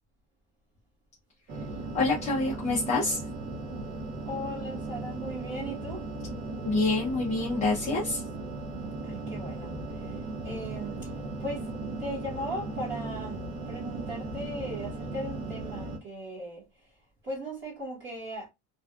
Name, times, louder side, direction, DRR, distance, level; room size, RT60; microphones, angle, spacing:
sound 1, 1.5-16.0, right 2 dB, 55° right, 0.7 m, -37 dB
voice 1, 1.9-3.2 6.6-8.2, left 3 dB, 20° left, 0.4 m, -27 dB
voice 2, 4.2-6.1 9.0-11.1 11.4-11.7 12.0-16.6 17.2-18.5, equal, 25° right, 1.1 m, -38 dB
2.6 x 2.2 x 2.3 m
cardioid pair, 165°, 42 cm